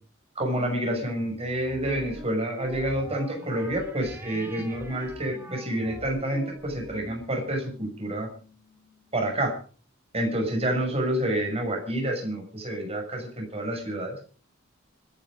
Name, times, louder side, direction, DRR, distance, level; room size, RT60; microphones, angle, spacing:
voice 1, 0.4-8.3 9.1-9.5 10.1-14.1, right 1 dB, 30° right, 3 dB, 6.3 m, -28 dB
sound 1, 0.6-9.3, equal, 10° right, 2.1 m, -43 dB
26.0 x 10.5 x 5.0 m, 0.42 s
head